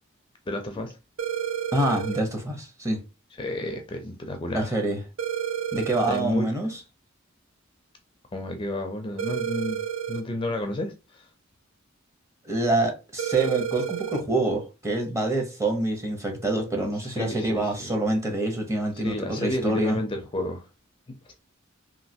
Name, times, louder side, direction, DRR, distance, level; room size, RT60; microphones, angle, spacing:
voice 1, 0.5-1.0 3.4-4.8 6.1-6.5 8.3-9.8 10.1-11.3 17.0-17.9 19.0-20.6, left 1 dB, 25° left, 0.4 m, -31 dB
sound 1, 1.2-2.2 5.2-6.2 9.2-10.2 13.2-14.2, right 9 dB, 70° right, 0.5 m, -30 dB
voice 2, 1.7-3.0 4.5-5.0 5.7-6.8 12.4-20.0, right 2 dB, 15° right, 0.7 m, -26 dB
3.1 x 2.6 x 2.7 m
head